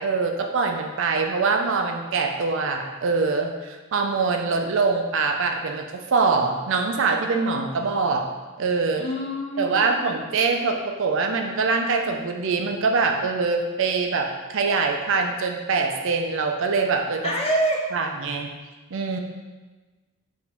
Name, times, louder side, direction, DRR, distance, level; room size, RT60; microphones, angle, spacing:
voice 1, 0.0-5.8 6.1-8.3 8.6-9.0 9.6-17.3 17.9-18.5 18.9-19.2, right 4 dB, 60° right, 4 dB, 0.4 m, -24 dB
voice 2, 9.0-10.1 17.2-17.8, right 1 dB, 25° left, 0 dB, 0.5 m, -26 dB
4.9 x 2.7 x 3.4 m, 1.2 s
head